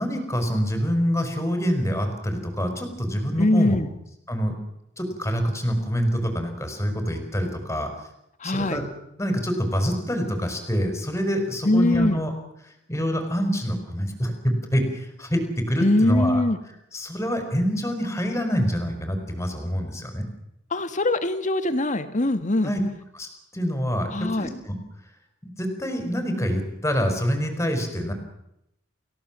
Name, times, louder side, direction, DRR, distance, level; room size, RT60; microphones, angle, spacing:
voice 1, 0.0-3.8 4.3-4.5 5.0-7.9 8.4-8.8 9.2-12.3 12.9-16.4 16.9-20.3 22.6-22.8 23.1-24.8 25.4-28.1, equal, 15° left, 5 dB, 5.1 m, -26 dB
voice 2, 3.4-3.9 8.4-8.8 11.6-12.2 15.8-16.6 20.7-22.7 24.1-24.5, left 1 dB, 40° left, 10 dB, 1.8 m, -22 dB
29.5 x 16.0 x 7.6 m, 0.81 s
head